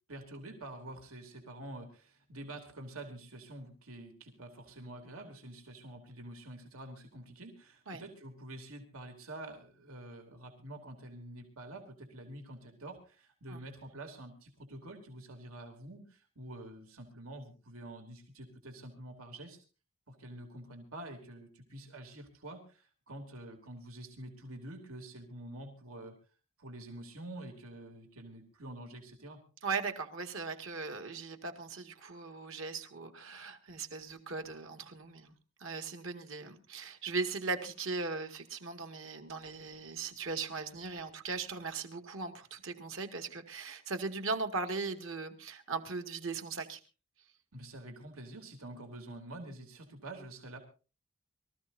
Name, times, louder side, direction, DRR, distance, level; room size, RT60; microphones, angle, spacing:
voice 1, 0.1-19.6 20.1-26.1 26.6-29.4 47.5-50.6, right 1 dB, 85° right, 4 dB, 3.3 m, -47 dB
voice 2, 29.6-35.3 35.6-46.8, right 4 dB, 65° right, 6 dB, 2.3 m, -38 dB
24.5 x 14.5 x 2.8 m, 0.34 s
head